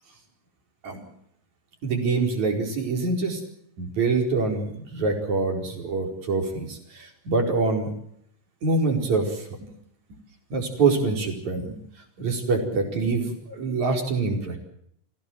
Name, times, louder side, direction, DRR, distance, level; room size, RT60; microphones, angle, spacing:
voice 1, 1.8-3.4 3.8-7.9 8.6-9.4 10.5-11.8 12.2-14.6, right 3 dB, 55° right, 2 dB, 6.0 m, -25 dB
27.5 x 17.0 x 7.7 m, 0.72 s
omnidirectional pair, 4.0 m